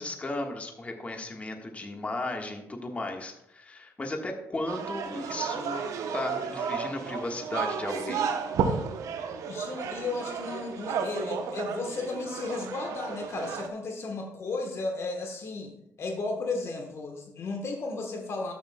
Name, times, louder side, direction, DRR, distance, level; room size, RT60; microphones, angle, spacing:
voice 1, 0.0-5.8 6.1-8.3, left 2 dB, 25° left, 2 dB, 1.5 m, -35 dB
sound 1, 4.7-13.7, right 6 dB, 75° right, 0.8 m, -33 dB
voice 2, 9.5-15.7 16.0-18.5, left 3 dB, 50° left, 3 dB, 1.3 m, -34 dB
12.5 x 7.3 x 2.3 m, 0.82 s
cardioid pair, 85°, 6 cm